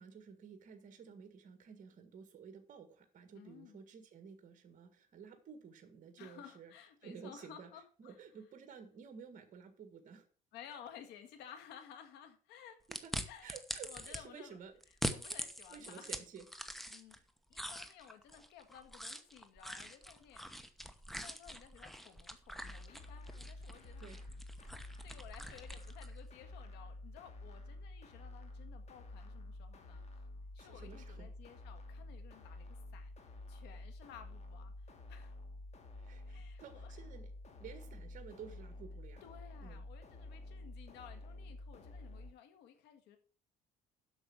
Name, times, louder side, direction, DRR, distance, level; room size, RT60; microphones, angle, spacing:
voice 1, 0.0-6.7 7.0-7.7 8.0-10.2 12.9-13.1 13.4-14.7 15.7-16.4 24.0-24.2 30.6-31.3 36.0-37.3 37.6-39.2 39.6-39.8, right 6 dB, 50° right, 7 dB, 1.7 m, -53 dB
voice 2, 3.4-3.8 6.2-8.2 10.5-12.8 13.3-13.6 13.8-14.6 15.1-16.1 16.9-17.2 17.5-20.5 21.1-24.1 25.0-30.0 30.5-35.3 36.2-37.0 39.2-43.2, left 9 dB, 90° left, 7 dB, 1.8 m, -56 dB
sound 1, 12.9-14.2 14.8-17.2 17.5-26.1, equal, ahead, 1.0 m, -44 dB
sound 2, 22.6-42.3, left 2 dB, 40° left, 2.4 m, -50 dB
8.0 x 6.2 x 7.1 m, 0.42 s
cardioid pair, 110°, 17 cm